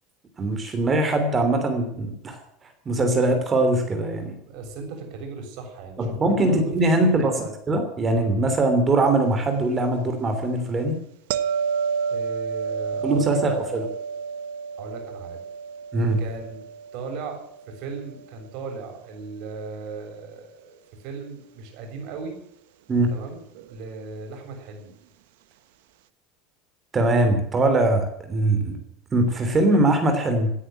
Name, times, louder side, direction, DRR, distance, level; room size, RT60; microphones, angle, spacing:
voice 1, 0.4-2.4 2.8-4.3 6.0-7.3 7.7-11.0 13.0-13.8 15.9-16.2 22.9-23.1 26.9-28.8 29.1-30.5, right 2 dB, 20° right, 6 dB, 3.2 m, -21 dB
voice 2, 4.4-7.5 12.1-13.8 14.8-15.4 16.2-16.6 16.9-22.4 23.1-24.9, right 4 dB, 60° right, 3 dB, 6.9 m, -37 dB
sound 1, 11.3-18.3 23.6-23.7, right 6 dB, 80° right, 1.1 m, -30 dB
18.0 x 9.9 x 7.7 m, 0.71 s
supercardioid pair, 150°, 0 cm